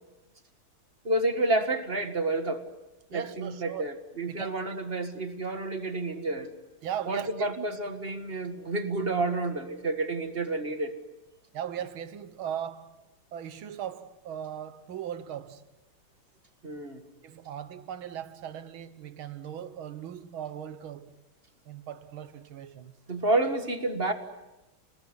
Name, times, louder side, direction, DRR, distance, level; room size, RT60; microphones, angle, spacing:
voice 1, 1.0-2.6 3.1-6.5 7.1-10.9 16.6-17.0 23.1-24.1, right 2 dB, 30° right, 1.8 m, -29 dB
voice 2, 3.1-3.9 4.3-4.8 6.8-7.7 11.5-13.0 13.3-15.7 17.2-21.2 21.7-22.9, right 9 dB, 80° right, 2.0 m, -38 dB
29.5 x 19.0 x 9.8 m
omnidirectional pair, 2.2 m